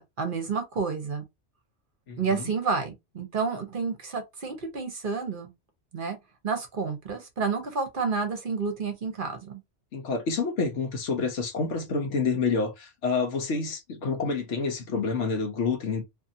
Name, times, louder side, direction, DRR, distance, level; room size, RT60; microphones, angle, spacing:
voice 1, 0.2-1.3 2.2-5.5 5.9-6.2 6.4-9.6, right 5 dB, 50° right, 0.8 m, -30 dB
voice 2, 2.1-2.5 9.9-16.0, left 4 dB, 70° left, 1.1 m, -28 dB
2.6 x 2.6 x 2.6 m
omnidirectional pair, 1.3 m